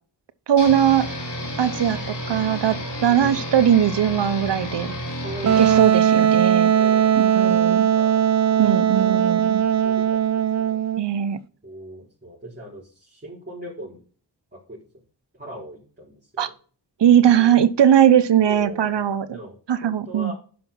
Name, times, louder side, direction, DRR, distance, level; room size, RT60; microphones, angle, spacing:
voice 1, 0.5-1.1 1.6-4.9 5.6-6.7 7.2-7.9 8.6-9.6 11.0-11.4 16.4-16.5 17.0-19.3 19.7-20.3, right 9 dB, 85° right, 12 dB, 1.0 m, -19 dB
sound 1, 0.6-5.8, equal, 80° left, 4.0 m, -31 dB
voice 2, 3.0-3.5 5.1-6.4 6.7-10.8 11.6-14.0 14.5-14.8 15.3-16.5 17.2-17.6 18.4-20.3, right 1 dB, 25° right, -6 dB, 4.7 m, -40 dB
Wind instrument woodwind instrument, 5.5-11.0, right 9 dB, 40° right, 0.5 m, -19 dB
10.0 x 6.0 x 5.4 m, 0.41 s
cardioid pair, 55°, 41 cm